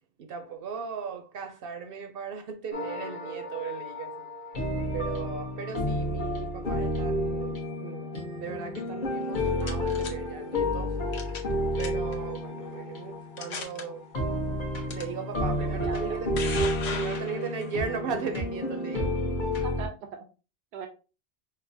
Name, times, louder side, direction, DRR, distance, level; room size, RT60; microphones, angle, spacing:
voice 1, 0.2-4.3 4.9-8.1 8.4-10.9 11.4-14.1 14.9-16.3 16.9-19.1, right 6 dB, 65° right, 0.7 m, -37 dB
sound 1, 2.7-6.1, left 2 dB, 15° left, 0.7 m, -40 dB
sound 2, 4.5-19.9, left 1 dB, 50° left, 1.0 m, -30 dB
sound 3, 9.2-10.1 11.1-11.5 11.8-12.1 12.8-12.9 13.4-13.8 14.9-15.0 15.9-17.7, left 5 dB, 80° left, 1.0 m, -37 dB
voice 2, 15.6-16.2 19.6-20.3 20.7-20.9, right 6 dB, 90° right, 0.9 m, -40 dB
5.3 x 2.1 x 2.6 m
omnidirectional pair, 1.1 m